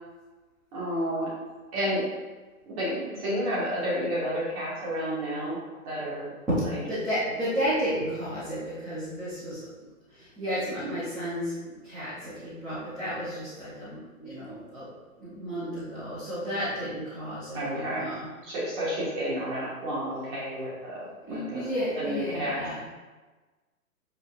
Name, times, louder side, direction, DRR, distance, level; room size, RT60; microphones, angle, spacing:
voice 1, 0.7-1.3 1.7-2.0 2.8-5.6 5.8-6.3 10.8-10.9 17.5-18.1 18.4-21.0 21.3-21.6 22.0-22.6, equal, 20° right, -8 dB, 1.7 m, -30 dB
voice 2, 6.9-9.7 10.1-11.5 11.8-14.9 15.2-18.3 21.3-22.8, equal, ahead, -17 dB, 0.6 m, -32 dB
9.2 x 4.5 x 2.5 m, 1.3 s
hypercardioid pair, 155°, 43 cm